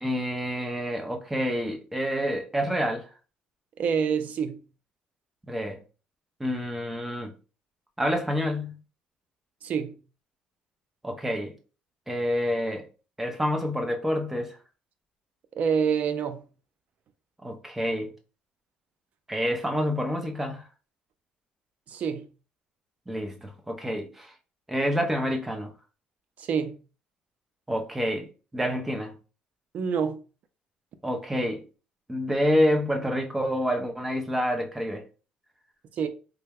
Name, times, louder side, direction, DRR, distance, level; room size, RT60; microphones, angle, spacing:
voice 1, 0.0-3.1 5.5-5.8 6.4-7.3 8.0-8.7 11.0-11.5 12.1-12.9 13.2-14.6 17.4-18.1 19.3-20.7 23.1-24.3 24.7-25.7 27.7-28.3 28.5-29.1 31.0-31.6 32.1-35.0, equal, 10° right, 0.6 m, -28 dB
voice 2, 3.8-4.6 9.6-10.0 15.6-16.5 21.9-22.3 26.4-26.8 29.7-30.2 36.0-36.1, right 6 dB, 55° right, 0.5 m, -27 dB
3.3 x 2.2 x 3.4 m
cardioid pair, 125°, 3 cm